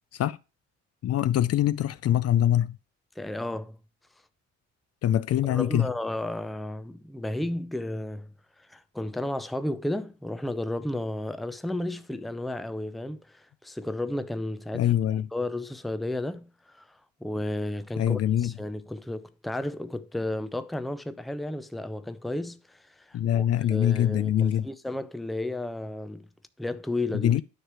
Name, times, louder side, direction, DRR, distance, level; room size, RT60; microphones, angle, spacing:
voice 1, 1.0-2.8 5.0-5.9 14.7-15.3 18.0-18.5 23.1-24.7 27.1-27.4, left 11 dB, 55° left, 0.5 m, -24 dB
voice 2, 3.2-3.8 5.4-8.3 8.7-14.9 15.3-23.5 23.7-26.3 26.6-27.3, left 1 dB, ahead, 0.5 m, -33 dB
9.5 x 3.3 x 6.0 m
cardioid pair, 90°, 30 cm